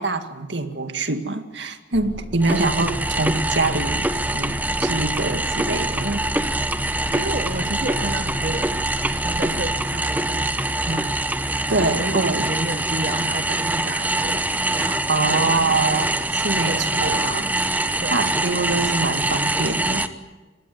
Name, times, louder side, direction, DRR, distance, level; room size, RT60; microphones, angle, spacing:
voice 1, 0.0-6.3 11.7-12.5 14.7-17.5 18.1-20.1, right 3 dB, 65° right, 8 dB, 2.1 m, -24 dB
sound 1, 1.9-9.8, equal, 30° left, 1.2 m, -37 dB
sound 2, 2.4-20.1, right 2 dB, 10° right, 1.0 m, -24 dB
voice 2, 7.1-8.9 9.2-10.6 10.9-11.1 12.0-14.4 15.3-15.8 16.6-17.0 18.0-18.4, right 2 dB, 50° right, 10 dB, 0.9 m, -31 dB
26.0 x 20.5 x 9.4 m, 1.2 s
head